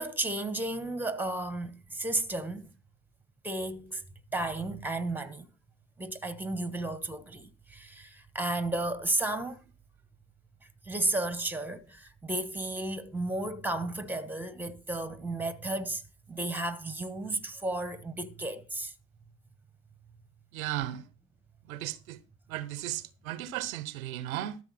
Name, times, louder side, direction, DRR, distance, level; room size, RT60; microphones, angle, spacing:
voice 1, 0.0-2.7 3.4-4.0 4.3-5.5 6.0-9.6 10.8-16.0 16.3-18.9, right 2 dB, 5° right, 1.2 m, -33 dB
voice 2, 20.5-21.0 21.7-22.2 22.5-24.6, right 13 dB, 80° right, 0.9 m, -35 dB
13.5 x 6.6 x 4.1 m
hypercardioid pair, 80°, 42 cm